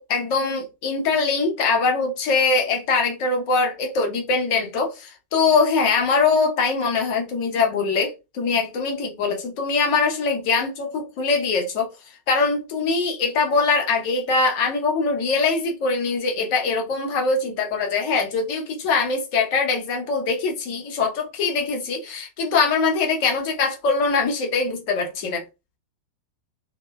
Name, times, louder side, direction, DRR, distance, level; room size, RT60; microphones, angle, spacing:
voice 1, 0.0-11.9 12.3-25.4, left 4 dB, 45° left, 0.9 m, -22 dB
2.6 x 2.1 x 2.3 m
figure-of-eight pair, 90°, 0 cm